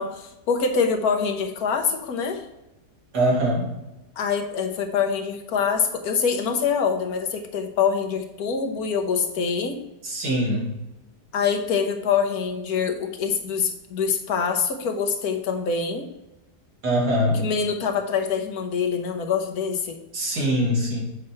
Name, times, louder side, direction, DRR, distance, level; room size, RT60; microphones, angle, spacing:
voice 1, 0.0-2.4 4.2-9.8 11.3-16.1 17.3-20.0, left 6 dB, 70° left, 5 dB, 1.3 m, -25 dB
voice 2, 3.1-3.6 10.0-10.7 16.8-17.4 20.1-21.0, equal, 80° right, -3 dB, 2.6 m, -22 dB
7.6 x 5.7 x 3.1 m, 0.97 s
omnidirectional pair, 1.7 m